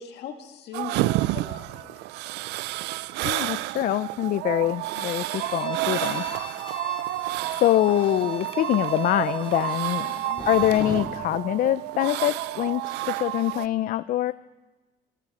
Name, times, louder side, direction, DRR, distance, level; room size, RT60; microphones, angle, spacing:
voice 1, 0.0-2.0 6.3-6.6 10.1-10.5, left 6 dB, 80° left, 4 dB, 2.0 m, -40 dB
sound 1, 0.7-13.7, right 17 dB, 85° right, 0.4 m, -30 dB
voice 2, 3.2-6.3 6.8-6.9 7.6-14.3, left 13 dB, 55° left, 15 dB, 0.4 m, -24 dB
Bowed string instrument, 4.9-10.9, left 6 dB, 30° left, 1.1 m, -44 dB
sound 2, 6.9-8.5 8.8-9.1 9.4-11.1, equal, ahead, 3.4 m, -40 dB
25.0 x 10.5 x 4.9 m, 1.2 s
cardioid pair, 110°, 17 cm